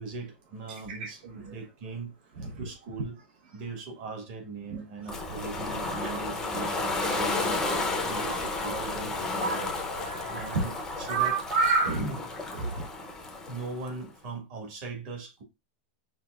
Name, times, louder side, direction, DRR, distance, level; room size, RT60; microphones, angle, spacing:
voice 1, 0.0-2.1 2.6-7.6 8.0-9.7 10.3-11.4 11.9-12.2 13.5-15.4, right 3 dB, 40° right, 1.5 m, -39 dB
Ocean, 5.1-13.9, left 3 dB, 10° left, 0.7 m, -32 dB
voice 2, 7.6-8.8 9.4-9.6 9.9-10.5 11.1-12.0 12.6-12.9, right 4 dB, 65° right, 1.1 m, -30 dB
5.7 x 2.7 x 2.4 m
supercardioid pair, 170°, 6 cm